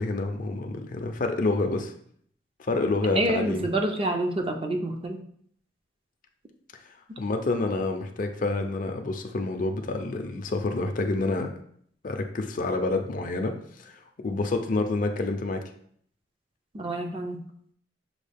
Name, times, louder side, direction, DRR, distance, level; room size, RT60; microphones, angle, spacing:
voice 1, 0.0-1.9 2.6-3.7 7.2-11.5 12.0-13.5 13.8-13.9 14.2-15.6, left 2 dB, 45° left, 5 dB, 0.5 m, -28 dB
voice 2, 3.1-5.2 16.7-17.4, right 1 dB, 30° right, 3 dB, 0.5 m, -27 dB
6.4 x 2.3 x 3.4 m, 0.63 s
head